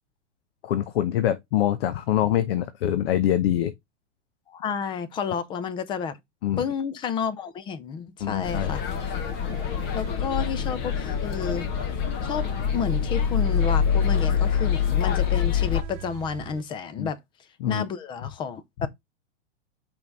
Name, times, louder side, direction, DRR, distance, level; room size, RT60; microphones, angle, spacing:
voice 1, 0.6-3.7 6.4-6.6 8.2-8.8 17.0-17.1 17.6-17.8, left 11 dB, 55° left, 0.9 m, -24 dB
voice 2, 4.5-6.2 6.6-9.1 9.5-9.6 9.9-11.7 12.2-12.5 12.7-17.2 17.7-18.9, left 6 dB, 15° left, 0.5 m, -31 dB
sound 1, 8.2-16.6, right 12 dB, 40° right, 1.0 m, -42 dB
sound 2, 8.4-15.8, left 8 dB, 30° left, 1.0 m, -25 dB
5.4 x 4.8 x 3.9 m
hypercardioid pair, 140°, 35 cm